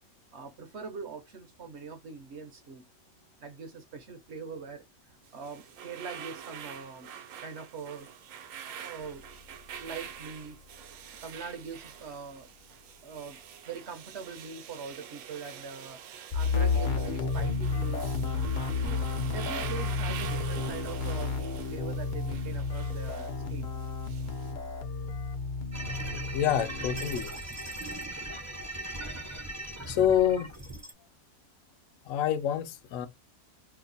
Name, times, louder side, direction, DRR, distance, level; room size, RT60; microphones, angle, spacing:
voice 1, 0.3-2.8 3.4-4.8 5.3-7.1 7.4-8.1 8.6-9.2 9.8-10.6 11.2-12.5 13.0-13.4 13.6-16.0 16.3-18.0 18.7-19.1 19.3-23.7, right 5 dB, 60° right, 0.8 m, -42 dB
sound 1, 5.3-24.5, right 9 dB, 80° right, 1.1 m, -45 dB
sound 2, 16.3-27.1, left 4 dB, 50° left, 0.6 m, -31 dB
sound 3, 25.7-30.9, right 1 dB, 25° right, 0.3 m, -39 dB
voice 2, 26.3-27.3 29.9-30.5 32.1-33.1, left 10 dB, 70° left, 0.9 m, -27 dB
2.9 x 2.1 x 3.8 m
omnidirectional pair, 1.5 m